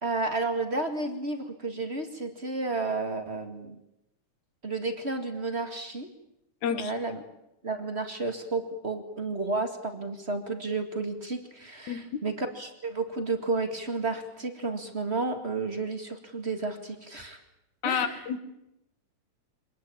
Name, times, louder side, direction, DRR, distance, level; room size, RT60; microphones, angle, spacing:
voice 1, 0.0-3.8 4.6-6.1 6.7-7.2 7.6-17.4 17.8-18.2, right 3 dB, 25° right, 7 dB, 1.9 m, -32 dB
voice 2, 6.6-6.9 11.9-12.2 17.8-18.4, left 7 dB, 75° left, 10 dB, 2.9 m, -30 dB
25.0 x 19.5 x 8.7 m, 0.87 s
omnidirectional pair, 3.4 m